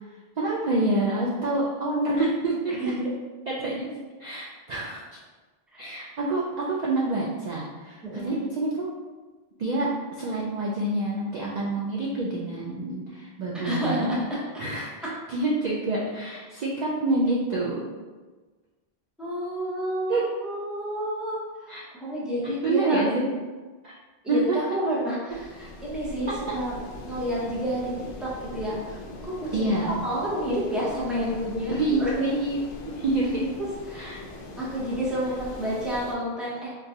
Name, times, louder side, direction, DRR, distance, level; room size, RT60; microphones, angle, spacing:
voice 1, 0.4-2.9 3.5-3.9 4.2-5.0 5.8-8.9 9.6-9.9 10.2-14.1 14.6-14.9 15.3-17.9 20.1-20.2 21.7-21.8 22.6-23.3 23.8-23.9 24.3-24.6 26.5-26.6 29.5-30.0 31.7-32.6 33.0-33.5 33.9-34.2, right 2 dB, 55° right, -5 dB, 0.5 m, -27 dB
voice 2, 2.7-3.1 8.0-8.3 13.6-14.4 19.2-23.0 24.2-26.7 27.0-27.9 28.2-32.1 33.9-34.1 34.6-36.7, equal, ahead, -7 dB, 0.6 m, -30 dB
sound 1, 25.3-36.1, left 2 dB, 65° left, 0.7 m, -41 dB
3.7 x 2.4 x 2.7 m, 1.3 s
omnidirectional pair, 1.1 m